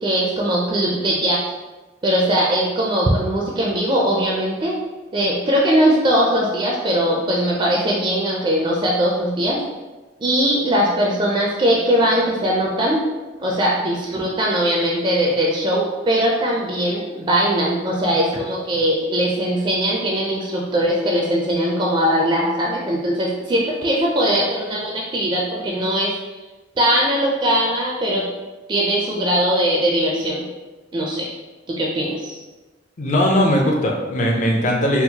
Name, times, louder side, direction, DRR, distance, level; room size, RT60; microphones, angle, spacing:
voice 1, 0.0-1.4 2.0-4.8 5.1-9.6 10.2-13.0 13.4-26.1 26.8-28.2 28.7-30.4 30.9-31.3 31.7-32.4, equal, 25° right, -3 dB, 0.4 m, -20 dB
voice 2, 33.0-35.0, equal, 40° left, 0 dB, 0.5 m, -19 dB
4.3 x 2.0 x 2.7 m, 1.2 s
head